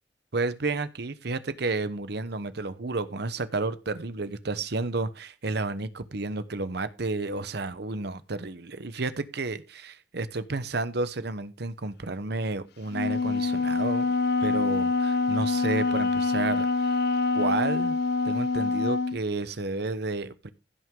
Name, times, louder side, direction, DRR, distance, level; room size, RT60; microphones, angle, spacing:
voice 1, 0.3-14.1 14.4-16.9 17.3-18.0 18.2-20.5, right 3 dB, 65° right, 1.0 m, -31 dB
Wind instrument woodwind instrument, 12.9-19.2, left 3 dB, 60° left, 0.4 m, -25 dB
15.5 x 6.2 x 3.8 m
head